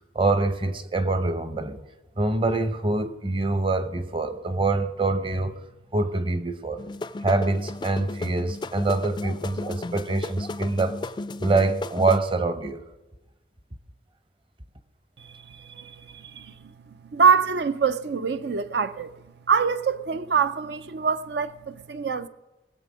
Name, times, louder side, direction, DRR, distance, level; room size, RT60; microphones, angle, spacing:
voice 1, 0.1-1.8 2.2-5.6 5.9-6.8 7.2-11.0 11.4-12.8, right 2 dB, 30° right, 0.8 m, -25 dB
sound 1, 6.8-12.2, left 2 dB, 25° left, 0.3 m, -34 dB
voice 2, 15.2-16.7 17.1-19.1 19.5-22.3, right 6 dB, 70° right, 0.5 m, -25 dB
20.0 x 7.5 x 6.2 m
head